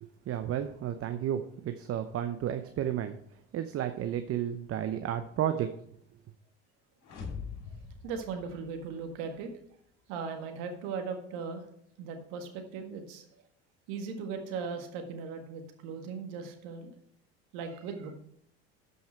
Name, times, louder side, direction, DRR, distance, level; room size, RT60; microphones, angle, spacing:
voice 1, 0.0-3.1 3.5-5.7, right 10 dB, 40° right, 9 dB, 0.8 m, -32 dB
sound 1, 7.0-9.2, left 5 dB, 55° left, 2.9 m, -43 dB
voice 2, 8.0-9.5 10.1-11.7 12.0-13.3 13.9-16.9 17.5-18.1, right 5 dB, 70° right, 5 dB, 1.8 m, -38 dB
12.5 x 5.5 x 4.5 m, 0.71 s
hypercardioid pair, 70°, 34 cm